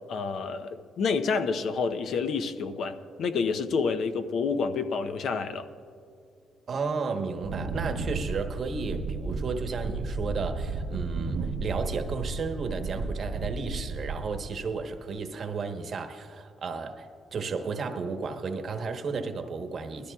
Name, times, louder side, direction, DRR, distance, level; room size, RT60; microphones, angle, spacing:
voice 1, 0.1-5.7, left 5 dB, 70° left, 9 dB, 0.7 m, -29 dB
voice 2, 6.7-20.1, right 4 dB, 50° right, 6 dB, 1.1 m, -33 dB
Wind, 7.4-14.5, right 3 dB, 85° right, 1.0 m, -33 dB
20.0 x 13.5 x 2.4 m, 2.5 s
cardioid pair, 90°, 0 cm